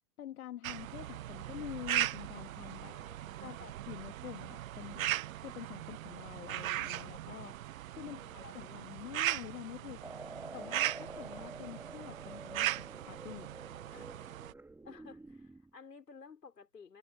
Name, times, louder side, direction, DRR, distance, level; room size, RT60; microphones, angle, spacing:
voice 1, 0.2-2.9 3.4-5.1 5.3-7.6 7.9-10.2 10.5-13.5 13.9-14.1, left 12 dB, 60° left, 2.3 m, -47 dB
sound 1, 0.6-14.5, right 13 dB, 60° right, 1.1 m, -39 dB
voice 2, 2.8-3.4 7.9-8.5 14.8-17.0, left 5 dB, 85° left, 5.2 m, -55 dB
sound 2, 10.0-15.7, right 2 dB, 5° right, 1.7 m, -49 dB
hypercardioid pair, 115°, 48 cm